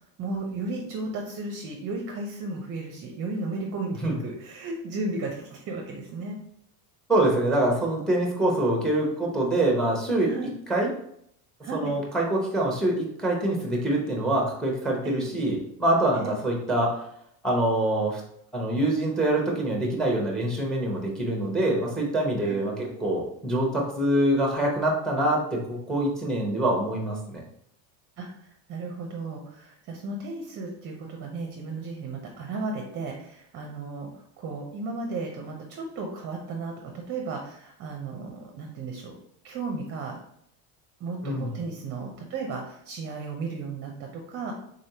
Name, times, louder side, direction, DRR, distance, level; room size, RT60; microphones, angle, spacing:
voice 1, 0.2-6.4 10.3-10.5 11.6-12.0 15.0-15.3 16.1-16.3 22.4-22.9 28.2-39.1 39.4-40.2 41.0-44.5, right 3 dB, 35° right, 2 dB, 0.6 m, -34 dB
voice 2, 7.1-10.9 11.7-17.0 17.4-18.2 18.5-27.4 41.2-41.5, right 1 dB, ahead, 0 dB, 0.7 m, -25 dB
3.8 x 3.3 x 2.8 m, 0.70 s
cardioid pair, 135°, 44 cm